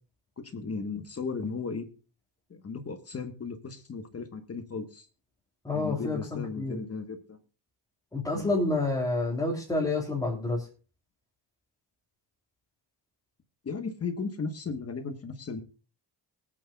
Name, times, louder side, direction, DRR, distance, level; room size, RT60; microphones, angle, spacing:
voice 1, 0.4-1.9 2.5-5.1 5.7-7.4 8.3-8.5 13.6-15.6, left 4 dB, 35° left, 7 dB, 1.3 m, -36 dB
voice 2, 5.6-6.8 8.1-10.7, left 2 dB, 10° left, -3 dB, 2.9 m, -29 dB
23.5 x 8.6 x 2.3 m, 0.37 s
wide cardioid pair, 170°, 43 cm